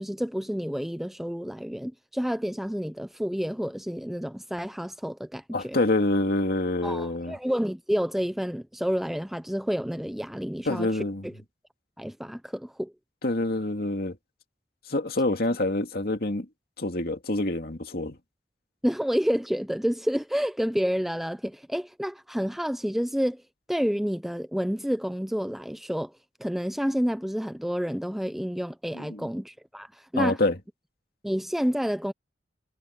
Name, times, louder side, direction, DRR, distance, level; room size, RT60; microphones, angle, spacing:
voice 1, 0.0-5.8 6.8-10.9 11.2-11.3 12.0-12.9 18.8-23.4 23.7-26.1 26.4-30.4 31.2-32.1, equal, ahead, 0.4 m, -29 dB
voice 2, 5.5-7.4 10.7-11.2 13.2-14.2 14.9-16.5 16.8-18.2 28.9-29.3 30.2-30.6, left 2 dB, 55° left, 2.4 m, -26 dB
head